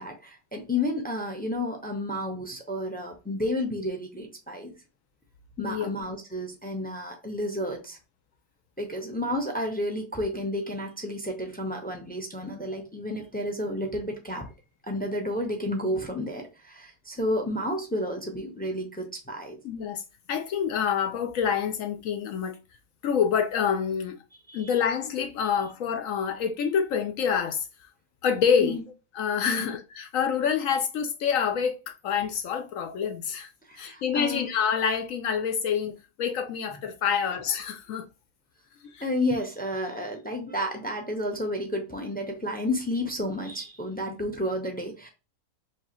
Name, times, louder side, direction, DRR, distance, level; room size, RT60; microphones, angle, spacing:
voice 1, 0.0-4.7 5.6-8.0 8.8-14.4 14.8-19.6 24.5-24.7 28.6-28.8 29.5-29.7 33.6-34.5 39.0-45.1, left 1 dB, 10° left, 0.5 m, -31 dB
voice 2, 5.6-5.9 19.6-20.0 20.3-22.6 23.0-24.2 24.5-27.7 28.2-28.8 29.1-33.5 33.8-38.1 38.8-39.1 44.1-44.2, left 7 dB, 65° left, 0.9 m, -27 dB
4.7 x 2.8 x 2.9 m
omnidirectional pair, 1.6 m